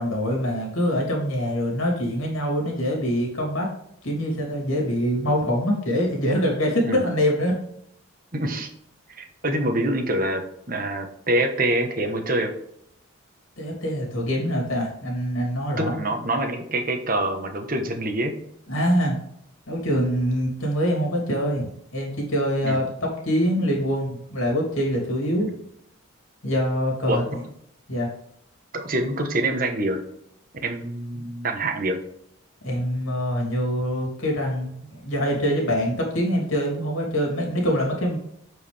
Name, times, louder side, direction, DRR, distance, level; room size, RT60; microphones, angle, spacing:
voice 1, 0.0-3.7 4.0-7.5 13.6-15.9 18.7-19.2 19.7-25.5 26.4-27.4 27.9-28.1 32.6-38.2, equal, 65° left, -1 dB, 2.9 m, -24 dB
voice 2, 8.3-8.7 9.1-10.4 10.7-12.5 15.8-18.3 22.6-22.8 27.1-27.4 28.7-30.0 30.6-32.0, right 1 dB, 40° right, 5 dB, 1.1 m, -25 dB
8.3 x 4.8 x 3.5 m, 0.72 s
head